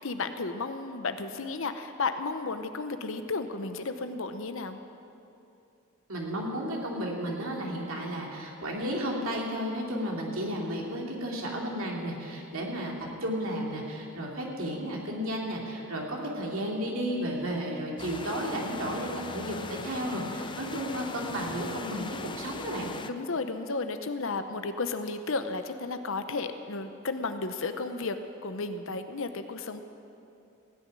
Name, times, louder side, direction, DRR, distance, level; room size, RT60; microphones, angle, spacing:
voice 1, 0.0-4.8 23.0-28.2 28.4-29.8, left 3 dB, 65° left, 9 dB, 0.8 m, -33 dB
voice 2, 6.1-13.0 13.2-22.9, equal, 70° right, -1 dB, 2.7 m, -33 dB
sound 1, 18.0-23.1, left 4 dB, 20° left, 0.5 m, -40 dB
16.5 x 7.1 x 9.8 m, 2.7 s
head